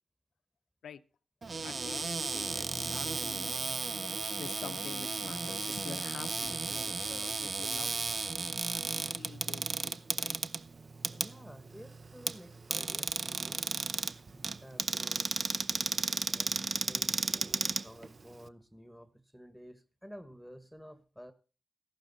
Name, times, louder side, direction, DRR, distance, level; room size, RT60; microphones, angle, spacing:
Cupboard open or close, 1.4-18.5, right 4 dB, 50° right, 0.6 m, -34 dB
voice 1, 1.6-3.5 4.4-8.3 8.7-10.4, left 7 dB, 80° left, 13 dB, 0.7 m, -47 dB
voice 2, 11.1-13.6 14.3-15.3 15.7-17.2 17.8-21.3, equal, 5° right, 13 dB, 1.2 m, -52 dB
14.5 x 12.0 x 4.0 m, 0.36 s
cardioid pair, 60°, 0 cm